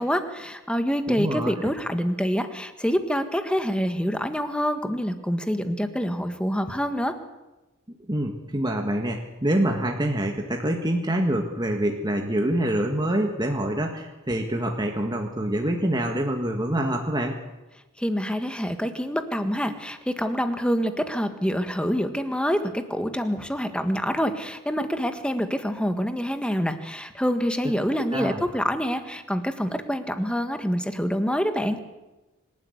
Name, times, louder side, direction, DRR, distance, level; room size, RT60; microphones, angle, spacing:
voice 1, 0.0-7.2 18.0-31.8, equal, 5° left, 8 dB, 1.6 m, -26 dB
voice 2, 1.1-1.7 8.1-17.3 27.9-28.4, right 1 dB, 20° right, 2 dB, 1.8 m, -26 dB
25.5 x 12.5 x 9.7 m, 1.1 s
head